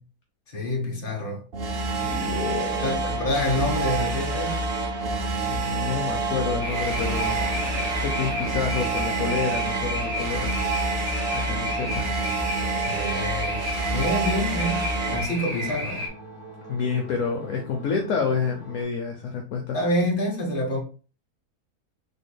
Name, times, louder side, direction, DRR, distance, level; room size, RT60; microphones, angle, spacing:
voice 1, 0.5-1.4 2.8-4.6 12.8-13.6 13.9-16.1 19.7-20.8, left 1 dB, 40° left, 1.2 m, -27 dB
sound 1, 1.5-15.3, right 3 dB, 55° right, 0.7 m, -28 dB
sound 2, 1.6-18.8, right 1 dB, 5° right, 1.6 m, -43 dB
voice 2, 2.0-3.0 5.5-7.4 8.0-10.6 11.5-12.1 16.7-19.8, left 5 dB, 65° left, 0.9 m, -28 dB
sound 3, 6.6-16.1, equal, 75° right, 1.6 m, -32 dB
3.9 x 3.5 x 2.2 m
omnidirectional pair, 1.6 m